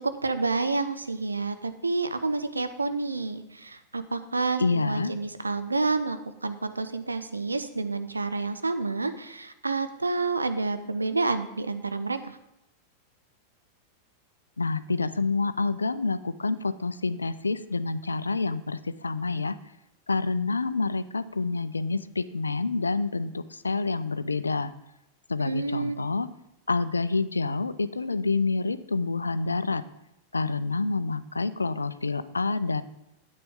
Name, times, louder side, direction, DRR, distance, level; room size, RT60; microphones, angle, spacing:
voice 1, 0.0-12.4 25.4-26.0, right 3 dB, 80° right, 10 dB, 0.6 m, -29 dB
voice 2, 4.6-5.1 14.6-19.6 20.1-24.7 25.3-26.3 26.7-29.8 30.3-32.8, left 3 dB, 80° left, 15 dB, 0.4 m, -28 dB
9.5 x 8.8 x 3.6 m, 0.87 s
figure-of-eight pair, 90°, 0 cm